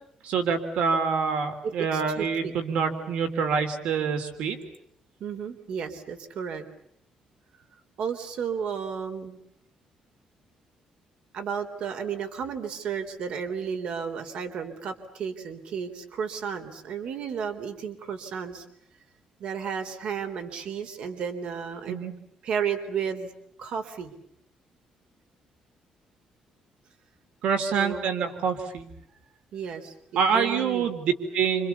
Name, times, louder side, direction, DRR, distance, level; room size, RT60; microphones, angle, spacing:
voice 1, 0.2-4.6 21.9-22.1 27.4-28.9 30.1-31.7, right 6 dB, 75° right, 7 dB, 3.5 m, -26 dB
voice 2, 1.6-2.5 5.2-6.6 8.0-9.4 11.3-18.6 19.4-22.1 22.4-23.3 23.6-24.1 27.7-28.0 29.5-31.0, right 7 dB, 60° right, 7 dB, 3.7 m, -33 dB
29.5 x 28.0 x 7.1 m, 0.73 s
cardioid pair, 175°, 2 cm